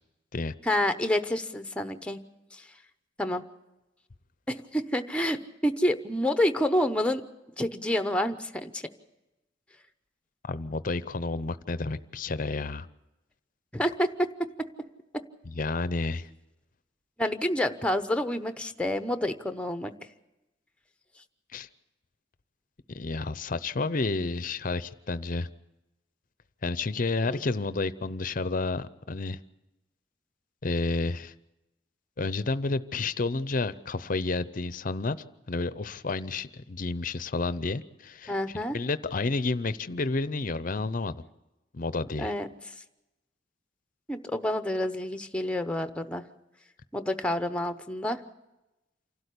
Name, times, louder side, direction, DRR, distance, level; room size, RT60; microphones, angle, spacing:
voice 1, 0.7-2.2 2.5-2.6 3.2-3.4 4.5-7.2 7.6-8.8 13.7-14.3 17.2-19.9 27.3-27.4 38.3-38.8 42.2-42.5 44.1-46.2 46.9-48.2, left 1 dB, 5° left, 9 dB, 0.8 m, -28 dB
voice 2, 10.4-12.9 15.5-16.3 21.5-21.7 22.9-25.5 26.6-29.4 30.6-31.3 32.2-35.2 35.5-41.1 41.7-42.3, left 3 dB, 45° left, 15 dB, 0.7 m, -30 dB
28.0 x 12.5 x 8.4 m, 0.99 s
head